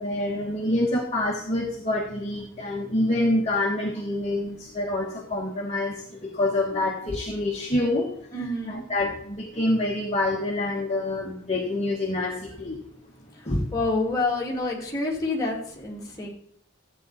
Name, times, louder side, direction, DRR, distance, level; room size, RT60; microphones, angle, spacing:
voice 1, 0.0-8.1 8.7-12.8 13.4-13.7, left 1 dB, 35° left, -2 dB, 1.4 m, -26 dB
voice 2, 8.3-8.8 13.7-16.3, left 2 dB, 20° left, -3 dB, 2.6 m, -27 dB
13.5 x 8.2 x 4.1 m, 0.68 s
head